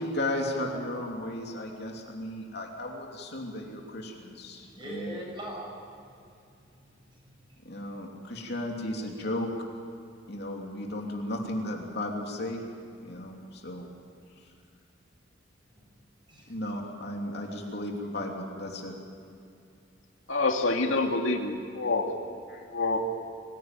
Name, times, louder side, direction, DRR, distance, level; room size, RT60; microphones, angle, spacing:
voice 1, 0.0-5.2 7.6-9.6 10.3-12.6 13.0-13.9 16.5-18.9 22.5-22.7, left 1 dB, 55° left, 0 dB, 3.1 m, -35 dB
voice 2, 4.5-5.9 6.3-6.6 7.1-7.9 16.3-16.6, right 1 dB, 25° right, -2 dB, 7.5 m, -42 dB
voice 3, 20.3-22.1 22.7-23.0, left 3 dB, 80° left, 2 dB, 2.2 m, -26 dB
25.0 x 16.5 x 9.2 m, 2.5 s
head